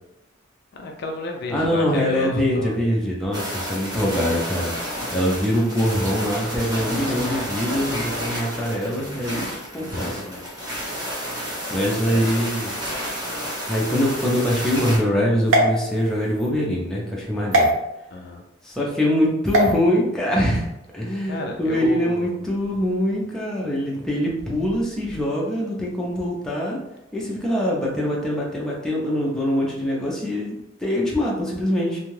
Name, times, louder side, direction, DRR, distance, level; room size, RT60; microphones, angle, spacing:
voice 1, 0.7-2.8 8.8-9.4 9.8-10.7 11.7-12.3 18.1-18.4 21.2-22.4, left 2 dB, 55° left, 2 dB, 0.4 m, -33 dB
voice 2, 1.5-4.7 5.1-9.5 9.7-10.2 11.7-12.7 13.7-17.7 18.6-20.7 20.9-26.8 27.1-32.0, equal, 5° left, -4 dB, 0.5 m, -23 dB
sound 1, 3.3-15.0, equal, 20° right, 0.9 m, -30 dB
sound 2, 15.5-16.5 17.5-17.7 19.5-19.7, right 1 dB, 70° right, 0.7 m, -20 dB
2.6 x 2.3 x 3.1 m, 0.90 s
head